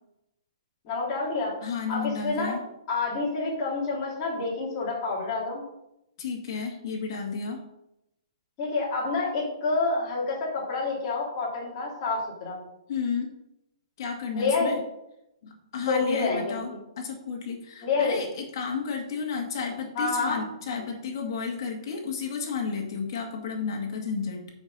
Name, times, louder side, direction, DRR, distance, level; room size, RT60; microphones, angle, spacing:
voice 1, 0.8-1.5 1.9-2.5 2.9-5.6 8.6-12.6 14.3-14.8 15.9-16.5 17.8-18.2 20.0-20.4, left 3 dB, 25° left, -6 dB, 2.7 m, -28 dB
voice 2, 1.6-2.6 6.2-7.6 12.9-13.3 14.0-14.8 15.4-24.5, left 5 dB, 45° left, 1 dB, 2.0 m, -32 dB
7.0 x 5.2 x 5.4 m, 0.85 s
hypercardioid pair, 165°, 3 cm